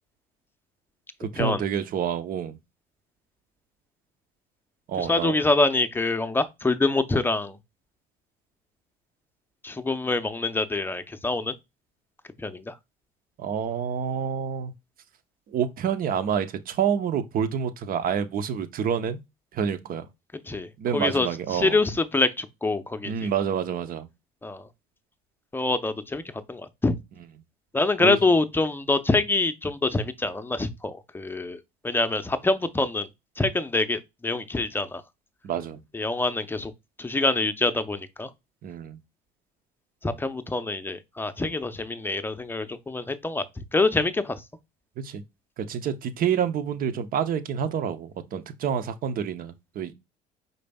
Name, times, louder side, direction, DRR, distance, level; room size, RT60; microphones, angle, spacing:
voice 1, 1.2-2.6 4.9-5.4 13.4-14.7 15.5-19.2 19.5-20.0 20.8-21.8 23.0-24.1 28.0-28.2 35.4-35.8 38.6-39.0 45.0-45.2 45.6-49.9, right 8 dB, 50° right, 0.8 m, -28 dB
voice 2, 5.0-7.6 9.6-11.5 12.4-12.7 20.5-23.1 24.4-24.6 25.5-26.2 26.5-26.9 27.7-31.6 31.8-33.1 33.4-35.0 35.9-36.7 37.0-38.3 40.0-43.4 43.7-44.4, left 2 dB, 10° left, 0.7 m, -25 dB
5.1 x 4.0 x 2.3 m
supercardioid pair, 80°, 18 cm